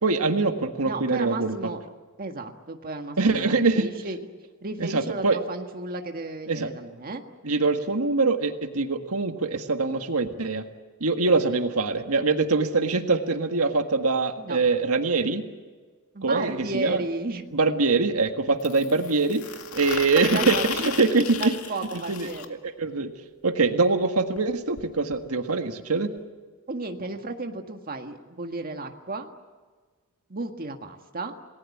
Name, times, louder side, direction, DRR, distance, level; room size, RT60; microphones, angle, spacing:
voice 1, 0.0-1.5 3.2-3.9 4.8-5.4 6.5-6.7 7.4-10.6 11.0-15.4 16.2-17.0 17.5-19.4 19.7-21.5 22.1-22.3 22.6-23.1 23.4-26.1, right 3 dB, 90° right, 6 dB, 1.7 m, -23 dB
voice 2, 0.8-1.8 2.2-4.2 4.6-7.2 14.4-14.6 16.1-17.4 20.1-20.6 21.4-22.6 26.7-29.3 30.3-31.3, right 3 dB, 45° right, 5 dB, 1.7 m, -33 dB
sound 1, 16.6-16.7 18.6-22.4 24.4-24.5 24.8-24.9 25.1-25.2 26.2-26.3, left 7 dB, 75° left, 2.2 m, -34 dB
28.5 x 19.0 x 8.5 m, 1.4 s
head